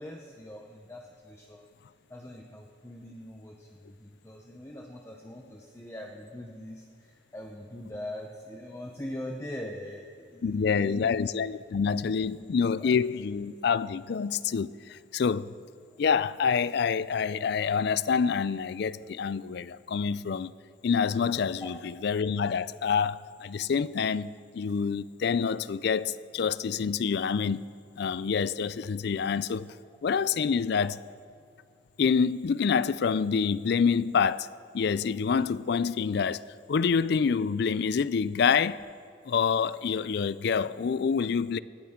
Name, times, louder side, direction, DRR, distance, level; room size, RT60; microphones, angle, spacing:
voice 1, 0.0-1.6 2.1-11.3 12.3-12.5 12.8-12.9 21.6-21.7, left 1 dB, 15° left, 0.8 m, -42 dB
voice 2, 10.4-15.5 16.0-20.5 20.8-21.7 22.0-27.6 28.0-29.7 30.0-31.0 32.0-34.5 34.7-36.4 36.7-38.8 39.3-41.6, left 6 dB, 55° left, 0.4 m, -27 dB
19.0 x 13.5 x 3.7 m
head